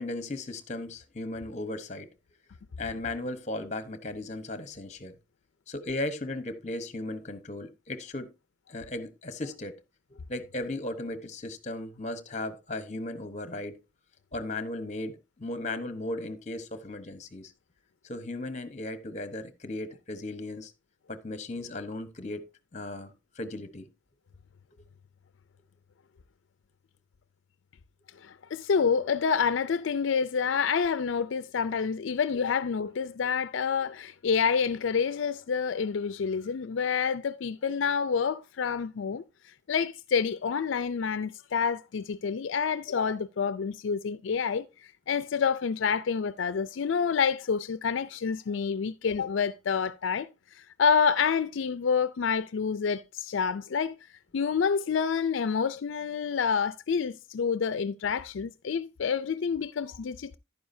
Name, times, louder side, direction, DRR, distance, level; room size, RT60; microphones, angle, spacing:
voice 1, 0.0-2.1 2.8-5.2 5.7-8.3 8.7-9.8 10.1-13.8 14.3-17.5 18.0-20.7 21.1-22.4 22.7-23.9, left 2 dB, 35° left, 1.0 m, -36 dB
voice 2, 28.2-39.2 39.7-53.9 54.3-60.4, left 6 dB, 75° left, 0.4 m, -28 dB
11.0 x 9.5 x 2.7 m
head